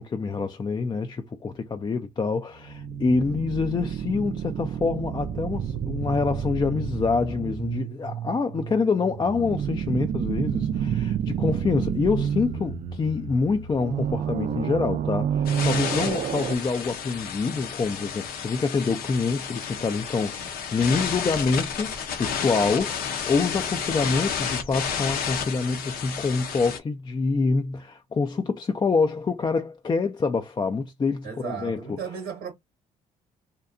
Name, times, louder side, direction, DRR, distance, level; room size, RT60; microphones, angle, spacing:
voice 1, 0.0-32.0, left 4 dB, 25° left, 0.4 m, -26 dB
sound 1, 2.5-16.6, right 8 dB, 50° right, 0.4 m, -29 dB
sound 2, 15.4-26.8, left 7 dB, 70° left, 0.6 m, -31 dB
voice 2, 31.2-32.5, right 7 dB, 90° right, 0.8 m, -35 dB
2.7 x 2.1 x 2.4 m
supercardioid pair, 65°, 16 cm